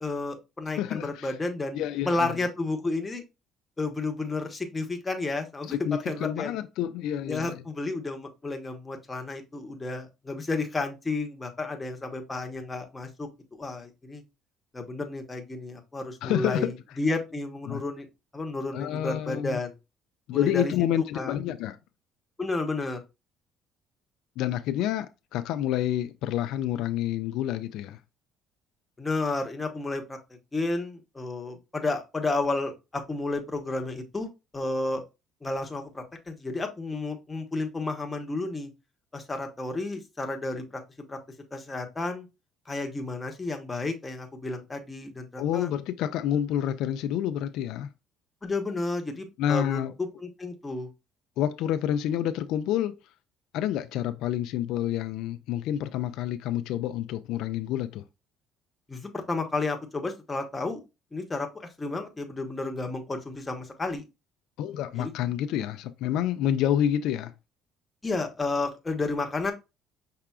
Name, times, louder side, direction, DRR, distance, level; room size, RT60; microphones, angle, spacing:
voice 1, 0.0-3.2 3.8-5.7 6.1-6.5 7.3-14.2 14.7-18.1 18.3-19.7 20.3-20.7 21.1-21.4 22.4-23.0 29.0-30.2 30.5-34.3 34.5-35.0 35.4-38.7 39.1-40.8 41.1-41.2 41.5-42.3 42.7-45.7 48.4-50.9 58.9-60.8 61.1-64.0 64.9-65.1 68.0-69.5, left 3 dB, 15° left, 0.9 m, -32 dB
voice 2, 0.8-1.3 1.7-2.3 5.7-7.6 16.2-16.7 17.7-17.8 18.7-19.6 20.3-21.8 24.4-28.0 45.4-47.9 49.4-49.9 51.4-52.9 53.5-58.0 64.6-67.3, left 11 dB, 75° left, 0.3 m, -28 dB
5.6 x 3.6 x 2.3 m
cardioid pair, 125°, 0 cm